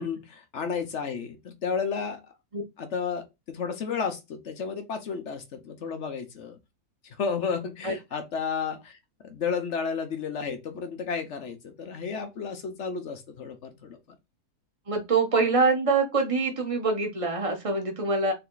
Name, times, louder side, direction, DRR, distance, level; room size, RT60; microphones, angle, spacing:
voice 1, 0.0-2.2 2.8-6.6 7.1-9.0 9.2-14.0, left 6 dB, 55° left, 1.0 m, -32 dB
voice 2, 14.9-18.3, right 3 dB, 25° right, 1.1 m, -24 dB
3.9 x 3.4 x 3.9 m
omnidirectional pair, 1.7 m